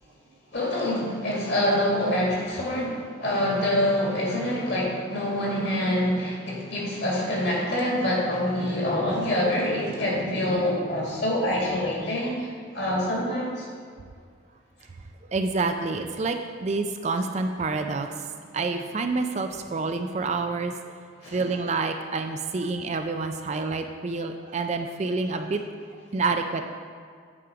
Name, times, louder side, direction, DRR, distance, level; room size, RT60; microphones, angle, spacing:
voice 1, 0.5-13.7 21.2-21.5, left 1 dB, 55° left, -4 dB, 2.1 m, -26 dB
voice 2, 15.3-18.3 18.5-20.7 21.3-25.6 26.1-26.7, right 3 dB, 35° right, 6 dB, 0.3 m, -28 dB
8.5 x 4.9 x 4.9 m, 2.1 s
head